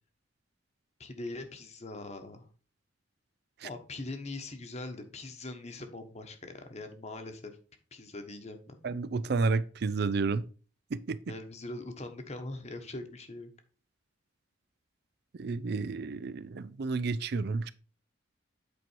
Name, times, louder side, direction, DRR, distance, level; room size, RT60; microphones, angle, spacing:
voice 1, 1.0-2.5 3.6-7.6 7.9-8.8 11.3-13.5, left 2 dB, 35° left, 1.2 m, -42 dB
voice 2, 8.8-10.4 10.9-11.2 15.4-17.7, right 4 dB, 55° right, 0.4 m, -31 dB
8.5 x 4.5 x 4.5 m
head